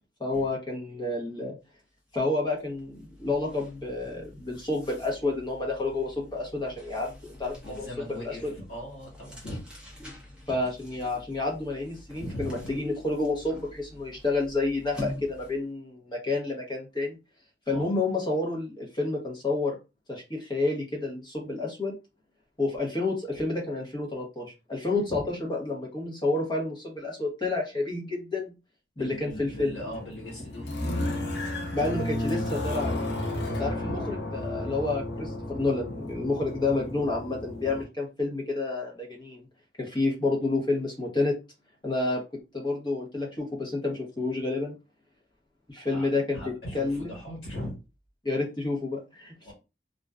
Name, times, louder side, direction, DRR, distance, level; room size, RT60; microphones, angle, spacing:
voice 1, 0.2-1.6 2.1-7.9 8.2-8.5 10.0-10.1 10.5-17.2 17.7-19.8 20.1-21.9 22.6-28.5 29.0-29.8 31.7-33.0 33.6-39.4 39.8-41.3 41.8-42.2 42.5-44.7 45.7-47.2 48.2-49.5, left 2 dB, 25° left, -2 dB, 0.9 m, -29 dB
sound 1, 1.8-2.0 2.3-15.7, left 1 dB, 5° right, 0.7 m, -46 dB
voice 2, 7.6-9.6 10.0-10.2 10.5-10.6 12.2-12.8 17.7-17.8 24.9-25.3 29.0-31.1 33.7-34.0 45.9-46.1 46.3-47.8 49.4-49.5, left 1 dB, 90° left, -3 dB, 1.3 m, -40 dB
sound 2, 29.3-37.8, left 1 dB, 75° left, 0.6 m, -33 dB
2.5 x 2.2 x 2.3 m, 0.28 s
head